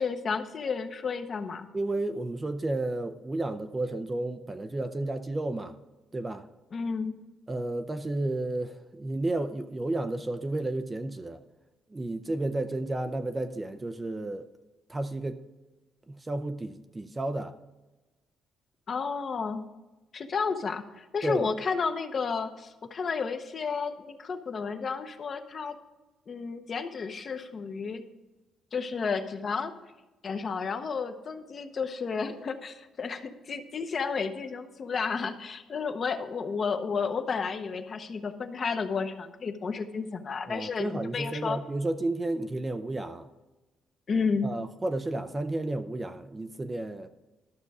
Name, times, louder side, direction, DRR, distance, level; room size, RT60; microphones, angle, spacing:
voice 1, 0.0-1.7 6.7-7.2 18.9-19.6 20.1-25.8 26.3-28.0 28.7-29.7 30.2-41.6 44.1-44.5, left 5 dB, 35° left, 8 dB, 0.8 m, -32 dB
voice 2, 1.7-5.7 6.1-6.4 7.5-11.4 11.9-14.5 14.9-15.4 16.1-17.5 21.2-21.5 40.5-43.3 44.4-47.1, right 2 dB, 15° right, 9 dB, 0.5 m, -32 dB
12.5 x 6.6 x 4.8 m, 1.1 s
cardioid pair, 155°, 0 cm